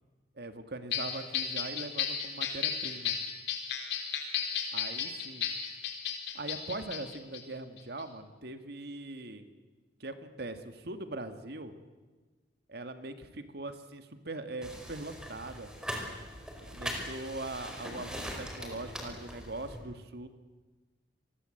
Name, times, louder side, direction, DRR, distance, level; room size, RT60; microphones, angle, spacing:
voice 1, 0.4-3.1 4.7-5.5 6.3-9.4 10.0-11.7 12.7-15.7 16.7-20.3, right 2 dB, 65° right, 9 dB, 2.0 m, -41 dB
sound 1, 0.9-7.4 7.8-8.0, left 8 dB, 70° left, 4.1 m, -34 dB
sound 2, 14.6-19.8, equal, 5° right, 4.8 m, -41 dB
29.5 x 21.0 x 7.9 m, 1.3 s
head